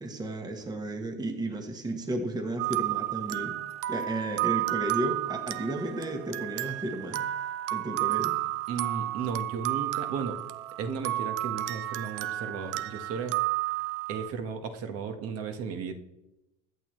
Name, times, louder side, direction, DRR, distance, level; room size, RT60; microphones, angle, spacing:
voice 1, 0.0-3.6 3.9-7.3 7.7-8.4, right 1 dB, 10° right, 4 dB, 1.3 m, -33 dB
sound 1, 2.6-14.3, right 16 dB, 80° right, 0.9 m, -32 dB
voice 2, 8.7-10.4 10.8-13.4 14.1-15.9, right 6 dB, 45° right, 6 dB, 1.5 m, -35 dB
23.0 x 8.8 x 3.2 m, 0.93 s
cardioid pair, 160°, 35 cm